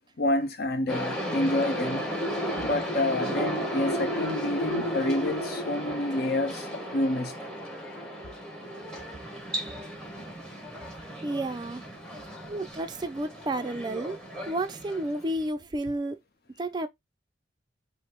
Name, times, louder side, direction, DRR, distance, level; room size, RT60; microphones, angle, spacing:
voice 1, 0.2-2.1 2.6-7.4, left 1 dB, 60° left, 0.7 m, -28 dB
sound 1, 0.9-15.4, equal, 5° left, 0.9 m, -34 dB
voice 2, 11.2-11.9 12.5-14.2 14.5-16.2 16.6-16.9, right 1 dB, 25° right, 0.3 m, -31 dB
5.1 x 2.0 x 2.9 m
head